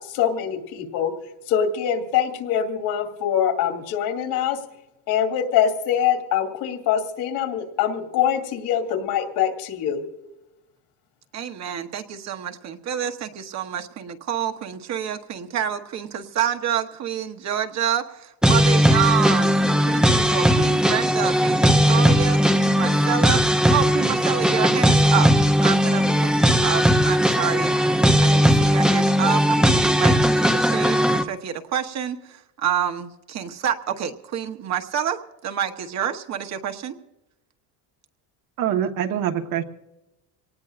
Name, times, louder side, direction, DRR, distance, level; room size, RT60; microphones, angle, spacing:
voice 1, 0.1-1.1 1.5-4.6 5.1-10.0, left 9 dB, 65° left, 4 dB, 2.5 m, -23 dB
voice 2, 11.3-25.3 25.6-27.7 28.2-36.9, right 9 dB, 45° right, 6 dB, 1.1 m, -28 dB
sound 1, 18.4-31.2, equal, ahead, 0.6 m, -18 dB
voice 3, 38.6-39.6, right 10 dB, 65° right, 5 dB, 1.5 m, -24 dB
25.0 x 19.0 x 2.5 m, 0.94 s
cardioid pair, 140°, 38 cm